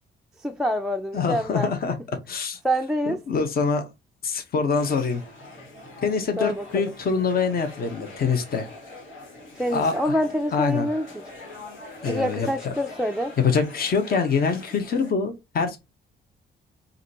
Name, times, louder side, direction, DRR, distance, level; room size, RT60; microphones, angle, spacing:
voice 1, 0.4-1.7 2.6-3.2 6.4-6.9 9.6-11.2 12.1-13.4, equal, 5° right, 0.3 m, -26 dB
voice 2, 1.1-1.9 2.3-2.6 3.1-3.9 4.2-5.2 6.0-8.7 9.7-10.2 10.5-10.9 12.0-12.5 13.4-15.8, left 5 dB, 50° left, 1.0 m, -24 dB
sound 1, 4.7-15.1, left 2 dB, 75° left, 1.9 m, -43 dB
4.9 x 2.6 x 2.8 m
cardioid pair, 90°, 20 cm